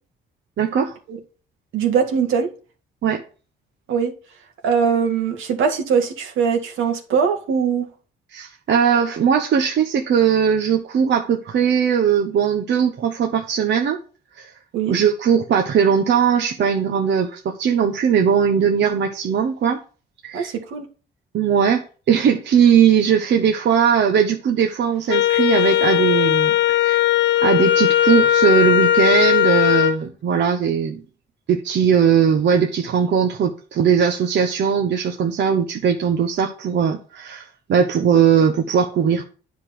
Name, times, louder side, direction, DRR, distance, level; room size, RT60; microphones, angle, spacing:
voice 1, 0.6-0.9 3.0-3.2 8.3-14.0 14.4-14.5 14.9-19.8 20.2-20.5 21.3-27.1 27.4-31.0 31.5-39.2, right 7 dB, 65° right, 1.1 m, -19 dB
voice 2, 1.7-2.5 3.9-4.1 4.6-7.9 14.7-15.0 20.3-20.9, right 6 dB, 85° right, 2.0 m, -21 dB
Wind instrument woodwind instrument, 25.1-30.0, left 12 dB, 70° left, 0.9 m, -17 dB
9.8 x 5.3 x 5.9 m
cardioid pair, 90°, 20 cm